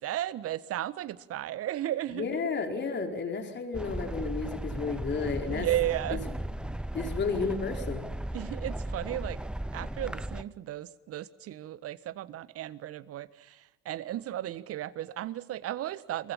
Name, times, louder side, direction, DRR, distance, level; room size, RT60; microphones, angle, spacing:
voice 1, 0.0-2.4 5.5-6.2 8.3-9.4 9.7-16.3, right 13 dB, 45° right, 18 dB, 1.4 m, -34 dB
voice 2, 2.1-5.7 6.6-8.1, left 4 dB, 30° left, 3 dB, 4.8 m, -32 dB
sound 1, 3.7-10.4, right 1 dB, 5° right, 0.8 m, -36 dB
30.0 x 23.0 x 5.7 m, 1.0 s
figure-of-eight pair, 65°, 34 cm